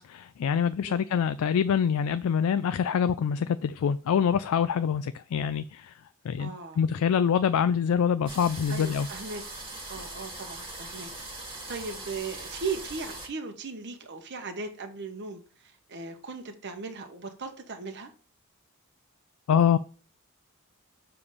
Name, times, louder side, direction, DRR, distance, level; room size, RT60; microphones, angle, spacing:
voice 1, 0.0-5.9 6.2-9.1 19.5-19.8, left 7 dB, 75° left, 0.3 m, -25 dB
voice 2, 6.4-6.8 8.7-9.4 9.9-11.1 11.4-18.1, right 4 dB, 55° right, 0.9 m, -38 dB
sound 1, 8.3-13.3, right 2 dB, 25° right, 1.7 m, -41 dB
6.9 x 3.4 x 5.4 m
head